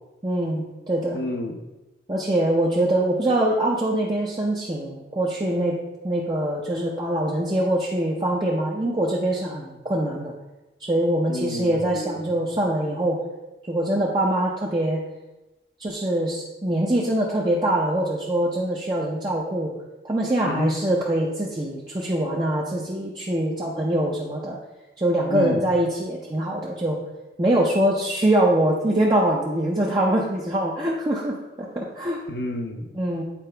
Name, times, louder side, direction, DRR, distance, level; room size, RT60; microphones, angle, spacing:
voice 1, 0.2-1.2 2.1-10.3 10.8-13.2 13.7-15.0 15.8-19.7 20.0-24.6 25.0-27.0 27.4-32.2 33.0-33.2, right 1 dB, 25° right, -4 dB, 0.6 m, -23 dB
voice 2, 1.1-1.6 11.3-12.5 20.4-20.8 25.3-25.7 32.3-33.0, left 2 dB, 65° left, 4 dB, 0.8 m, -30 dB
8.5 x 4.7 x 3.3 m, 1.0 s
head